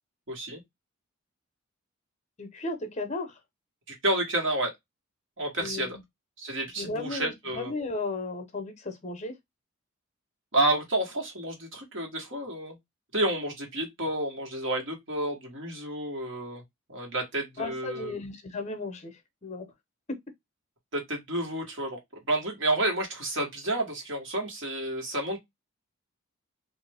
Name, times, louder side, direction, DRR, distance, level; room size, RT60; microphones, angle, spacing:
voice 1, 0.3-0.6 3.9-4.7 5.4-6.0 6.4-7.7 10.5-12.8 13.1-16.6 16.9-18.1 20.9-22.0 22.3-25.4, right 1 dB, 55° right, 1.3 m, -30 dB
voice 2, 2.4-3.4 5.6-6.0 6.8-9.3 17.6-19.7, left 2 dB, 30° left, 0.8 m, -35 dB
3.1 x 2.5 x 3.4 m
head